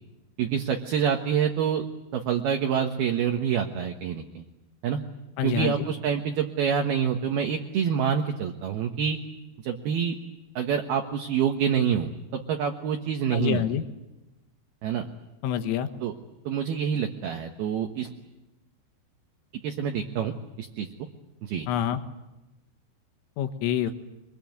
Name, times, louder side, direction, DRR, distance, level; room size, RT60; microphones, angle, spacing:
voice 1, 0.4-1.9 2.1-4.5 4.8-5.0 5.4-9.2 9.6-10.2 10.6-13.7 14.8-15.1 16.0-16.1 16.5-18.1 19.6-20.9 21.4-21.7, right 8 dB, 65° right, 4 dB, 2.6 m, -27 dB
voice 2, 5.4-5.7 13.3-13.8 15.4-15.9 21.7-22.0 23.4-23.9, left 10 dB, 80° left, 8 dB, 4.0 m, -26 dB
24.5 x 22.0 x 9.4 m, 1.0 s
omnidirectional pair, 5.9 m